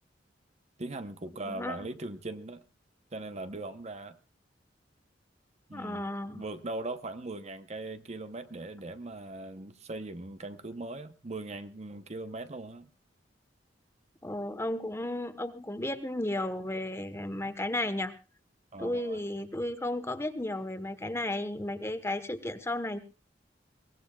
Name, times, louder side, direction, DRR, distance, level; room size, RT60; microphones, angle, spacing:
voice 1, 0.8-2.6 3.1-4.2 5.7-6.1 6.3-12.9 17.0-17.1 18.7-19.2, right 2 dB, 35° right, 0.8 m, -40 dB
voice 2, 1.5-1.8 5.7-6.4 14.2-18.1 18.8-23.0, left 1 dB, 15° left, 1.1 m, -34 dB
22.5 x 18.0 x 2.3 m
head